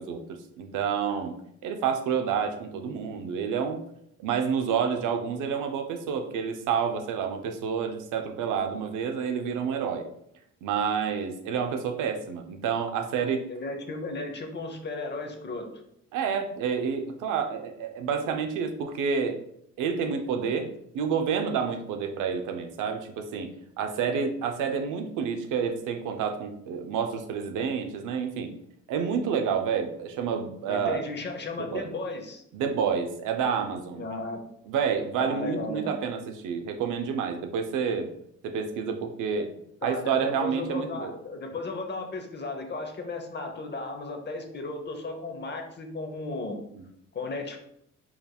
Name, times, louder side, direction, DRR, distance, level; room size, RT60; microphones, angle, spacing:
voice 1, 0.0-1.4 1.6-3.8 4.2-10.0 10.6-13.4 16.1-19.4 19.8-28.5 28.9-31.0 31.6-31.9 32.5-34.0 34.7-38.1 38.4-39.5 39.8-41.1 46.8-46.9, right 6 dB, 90° right, 6 dB, 0.6 m, -29 dB
voice 2, 13.5-15.8 30.7-32.4 34.0-34.4 35.2-35.9 39.8-46.6 47.1-47.6, left 3 dB, 35° left, 4 dB, 0.8 m, -35 dB
4.7 x 3.4 x 2.3 m, 0.73 s
cardioid pair, 90°, 30 cm